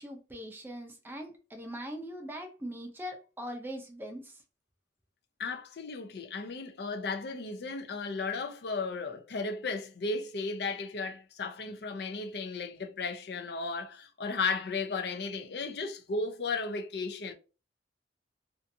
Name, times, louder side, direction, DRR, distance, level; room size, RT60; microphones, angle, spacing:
voice 1, 0.0-4.4, equal, 10° right, 0.5 m, -41 dB
voice 2, 5.4-17.3, left 4 dB, 60° left, 0.5 m, -35 dB
2.5 x 2.4 x 2.6 m
head